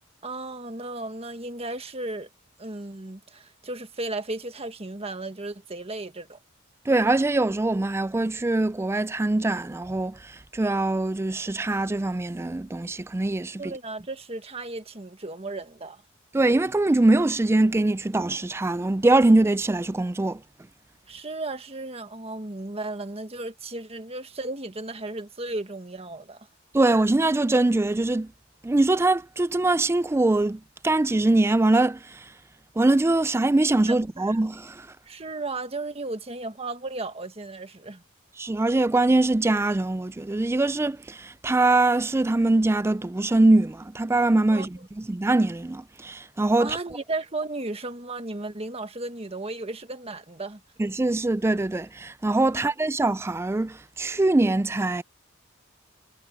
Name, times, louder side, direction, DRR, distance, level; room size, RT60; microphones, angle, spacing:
voice 1, 0.2-2.3 2.6-6.4 13.6-16.0 21.1-26.5 33.9-34.4 35.0-38.0 44.5-44.7 46.6-50.6 52.5-52.7, right 2 dB, 30° right, 1.5 m, -35 dB
voice 2, 6.9-13.6 16.3-20.4 26.7-28.3 28.6-32.3 32.8-34.9 38.4-46.8 50.8-55.0, right 2 dB, 10° right, 0.3 m, -23 dB
head